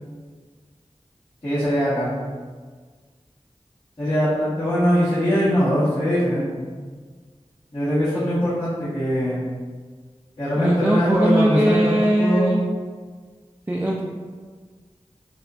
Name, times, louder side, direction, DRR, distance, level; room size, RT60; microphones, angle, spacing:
voice 1, 1.4-2.1 4.0-6.5 7.7-9.4 10.4-12.6, equal, 45° left, -16 dB, 1.4 m, -21 dB
voice 2, 10.6-12.6 13.7-14.0, right 1 dB, 15° right, -3 dB, 0.3 m, -20 dB
4.2 x 2.2 x 2.5 m, 1.5 s
wide cardioid pair, 45°, 12 cm